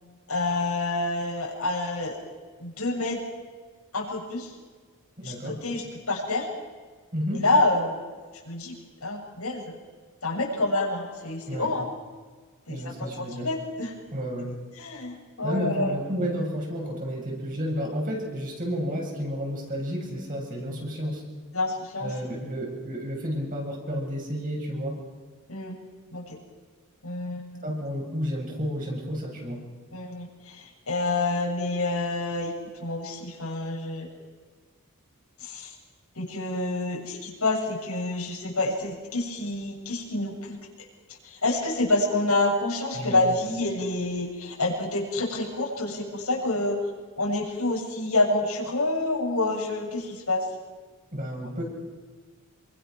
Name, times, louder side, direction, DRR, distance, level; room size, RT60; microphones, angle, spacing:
voice 1, 0.3-2.2 2.6-3.2 3.9-4.5 5.2-6.5 7.4-7.9 8.4-8.7 9.0-9.8 10.2-11.8 12.7-13.9 14.8-15.9 21.5-22.1 25.5-25.8 26.1-26.4 27.0-27.6 29.9-32.5 32.8-34.1 35.4-35.7 36.2-40.6 41.2-46.8 47.2-50.5, left 2 dB, 85° left, -2 dB, 7.3 m, -28 dB
voice 2, 5.2-5.6 7.1-7.4 11.5-11.7 12.7-13.5 14.1-14.5 15.4-21.2 22.0-25.0 27.6-29.6 42.9-43.2 51.1-51.6, equal, 40° right, -1 dB, 7.8 m, -31 dB
27.0 x 24.0 x 6.5 m, 1.5 s
head